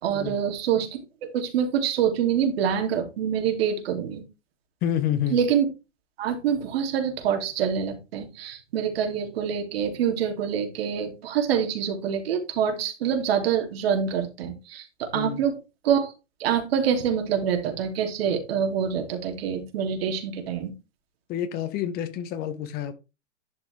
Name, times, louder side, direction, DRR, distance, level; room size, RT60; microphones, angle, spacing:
voice 1, 0.0-1.0 1.3-4.2 5.3-5.7 6.2-15.6 15.8-16.1 16.4-20.7, right 8 dB, 55° right, 2.9 m, -26 dB
voice 2, 4.8-5.4 15.1-15.4 21.3-22.9, left 10 dB, 25° left, 1.3 m, -28 dB
11.5 x 6.0 x 3.4 m
hypercardioid pair, 135°, 36 cm